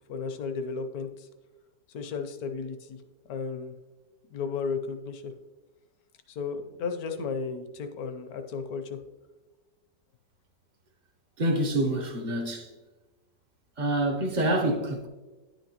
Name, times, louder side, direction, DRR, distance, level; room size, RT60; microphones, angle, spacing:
voice 1, 0.1-1.3 1.9-3.0 3.3-3.8 4.3-5.3 6.3-9.0, left 5 dB, 65° left, 1.0 m, -34 dB
voice 2, 11.4-12.7 13.8-15.1, right 1 dB, 45° right, 0.5 m, -27 dB
10.0 x 5.9 x 2.9 m
omnidirectional pair, 1.9 m